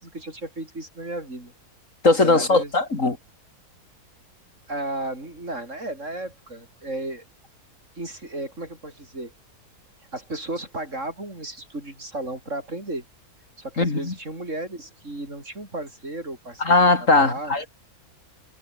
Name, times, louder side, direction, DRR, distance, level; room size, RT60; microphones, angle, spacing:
voice 1, 0.0-1.5 2.2-2.7 4.7-7.2 8.0-9.3 10.1-13.0 13.6-17.5, right 2 dB, 50° right, 6.6 m, -34 dB
voice 2, 2.0-3.2 13.8-14.1 16.6-17.7, left 3 dB, 55° left, 3.6 m, -19 dB
omnidirectional pair, 1.6 m